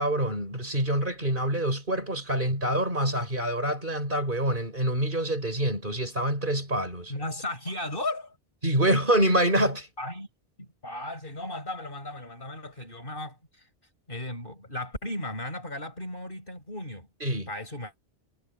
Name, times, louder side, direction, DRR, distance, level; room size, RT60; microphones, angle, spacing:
voice 1, 0.0-7.1 8.6-9.9 17.2-17.5, right 1 dB, 50° right, 7.0 m, -26 dB
voice 2, 7.1-8.4 10.0-10.3 10.6-13.7 14.1-17.9, left 1 dB, 55° left, 6.1 m, -36 dB
omnidirectional pair, 1.1 m